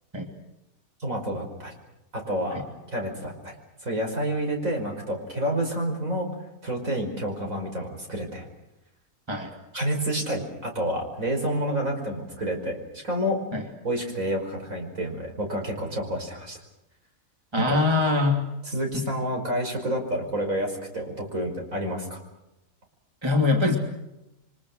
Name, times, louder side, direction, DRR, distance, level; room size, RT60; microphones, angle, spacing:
voice 1, 1.0-1.7 2.1-3.5 3.8-6.3 6.6-8.5 9.7-12.8 13.0-13.4 13.8-16.6 17.6-17.8 18.6-22.2, right 1 dB, 70° right, 2 dB, 5.7 m, -29 dB
voice 2, 17.5-18.4 18.9-19.0 23.2-23.8, left 3 dB, 20° right, 2 dB, 2.9 m, -22 dB
29.0 x 24.5 x 6.4 m, 0.92 s
omnidirectional pair, 1.5 m